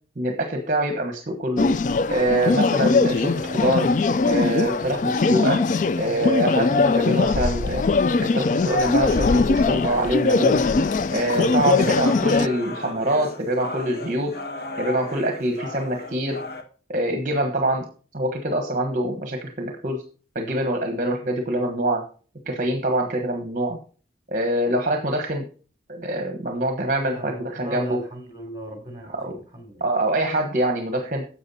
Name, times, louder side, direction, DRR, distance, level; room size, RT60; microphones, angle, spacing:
voice 1, 0.2-1.7 2.1-3.9 4.2-5.6 6.0-7.9 8.2-10.7 11.1-14.4 14.8-16.4 16.9-17.9 18.1-20.0 20.3-22.0 22.4-23.8 24.3-25.5 25.9-28.0 29.1-29.3 29.8-31.3, right 1 dB, 45° right, 1.2 m, -24 dB
sound 1, 1.6-12.5, left 3 dB, 45° left, 0.4 m, -21 dB
sound 2, 8.6-16.6, left 2 dB, 65° left, 1.7 m, -36 dB
voice 2, 11.6-11.9 27.0-29.8, right 1 dB, 25° right, 3.3 m, -37 dB
11.0 x 7.5 x 4.2 m
head